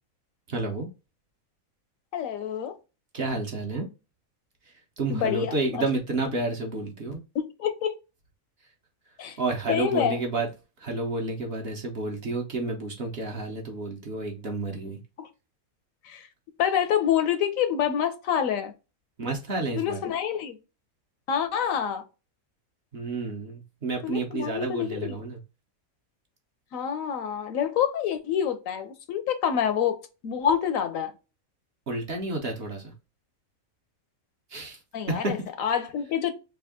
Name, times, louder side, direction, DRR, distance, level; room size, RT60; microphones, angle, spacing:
voice 1, 0.5-0.9 3.1-3.9 4.7-7.2 9.4-10.5 10.8-15.0 19.2-20.0 22.9-25.4 31.9-32.9 34.5-34.8 35.1-35.3, right 2 dB, 50° right, 0.9 m, -30 dB
voice 2, 2.1-2.7 5.1-5.8 7.3-7.9 9.2-9.4 9.7-10.2 15.2-15.3 16.0-16.3 16.6-18.7 19.8-20.6 21.3-22.0 24.0-25.2 26.7-31.1 34.9-36.3, left 9 dB, 75° left, 1.0 m, -27 dB
3.4 x 2.4 x 3.5 m
omnidirectional pair, 1.5 m